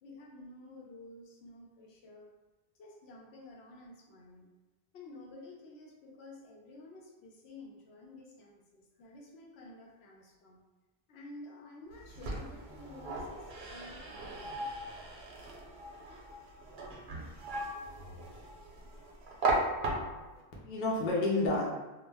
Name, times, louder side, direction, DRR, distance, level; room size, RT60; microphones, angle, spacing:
voice 1, 0.0-2.3 2.8-4.5 4.9-10.6 11.1-14.7, left 2 dB, 85° left, -1 dB, 0.8 m, -51 dB
sound 1, 11.9-20.4, right 2 dB, 80° right, 0.8 m, -37 dB
voice 2, 19.5-20.3 20.6-21.7, left 2 dB, 55° left, -4 dB, 0.6 m, -32 dB
2.2 x 2.1 x 3.3 m, 1.1 s
omnidirectional pair, 1.0 m